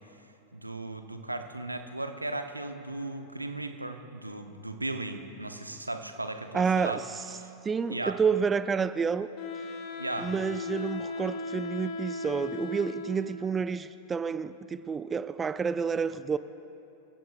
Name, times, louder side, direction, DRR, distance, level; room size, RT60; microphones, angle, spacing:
voice 1, 0.5-7.0 7.4-7.5 7.9-8.2 10.0-10.3, right 2 dB, 85° right, 7 dB, 0.9 m, -36 dB
voice 2, 6.5-7.0 7.6-9.3 10.2-16.4, right 6 dB, 20° right, 14 dB, 0.4 m, -29 dB
Wind instrument woodwind instrument, 9.4-13.5, left 3 dB, 45° left, 1.8 m, -37 dB
27.5 x 15.5 x 2.4 m, 2.9 s
figure-of-eight pair, 90°, 0 cm